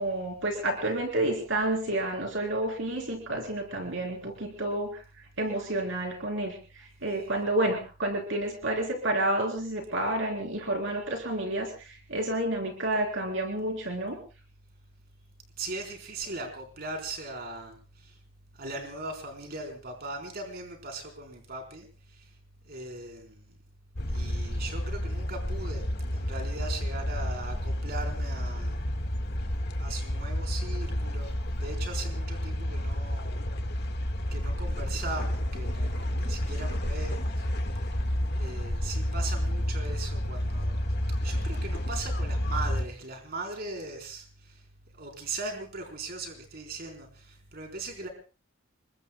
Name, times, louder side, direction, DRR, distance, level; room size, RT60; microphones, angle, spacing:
voice 1, 0.0-5.0 5.4-14.2, right 1 dB, 65° right, 2 dB, 3.8 m, -30 dB
voice 2, 15.6-18.2 18.6-21.9 22.1-22.3 22.7-23.5 24.1-25.8 26.1-28.8 29.8-31.3 31.6-33.4 34.3-37.5 38.4-40.8 41.2-44.5 44.9-48.1, right 2 dB, 50° right, 3 dB, 4.1 m, -39 dB
sound 1, 23.9-42.8, equal, 55° left, 1.7 m, -30 dB
29.0 x 22.5 x 2.3 m, 0.35 s
head